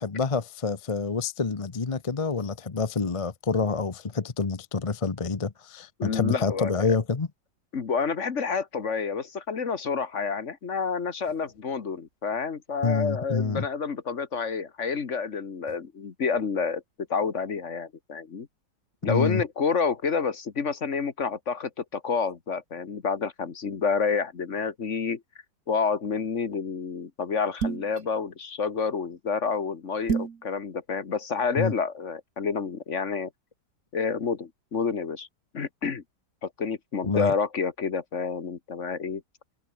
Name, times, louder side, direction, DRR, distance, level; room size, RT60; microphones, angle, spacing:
voice 1, 0.0-7.3 12.8-13.7 19.0-19.4 31.6-31.7 37.0-37.3, left 4 dB, 30° left, 0.7 m, -27 dB
voice 2, 6.0-6.9 7.7-16.8 17.1-18.5 19.0-25.2 25.7-33.3 33.9-35.3 35.5-36.0 36.4-39.2, left 5 dB, 45° left, 1.7 m, -29 dB
sound 1, 27.6-28.0 30.1-30.4, right 6 dB, 50° right, 1.9 m, -27 dB
open air
omnidirectional pair, 2.0 m